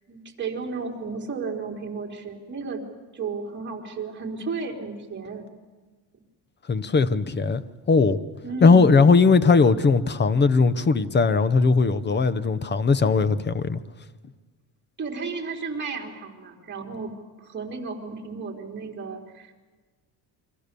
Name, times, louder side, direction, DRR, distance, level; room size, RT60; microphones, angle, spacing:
voice 1, 0.1-2.8 3.1-5.5 8.4-9.1 15.0-19.5, right 4 dB, 25° right, -1 dB, 3.8 m, -33 dB
voice 2, 6.7-8.2 8.6-13.8, left 4 dB, 25° left, 15 dB, 0.9 m, -19 dB
29.0 x 24.0 x 6.9 m, 1.3 s
cardioid pair, 145°, 44 cm